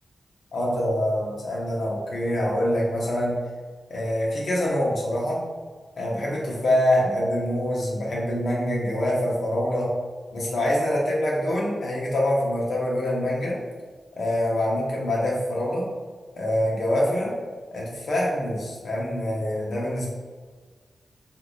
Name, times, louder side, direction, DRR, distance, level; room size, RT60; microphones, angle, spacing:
voice 1, 0.5-3.4 3.9-5.4 6.0-9.9 10.3-13.6 14.1-15.9 16.3-17.3 17.7-20.1, left 1 dB, 70° left, -4 dB, 1.0 m, -25 dB
4.8 x 2.8 x 2.6 m, 1.5 s
wide cardioid pair, 105°, 0 cm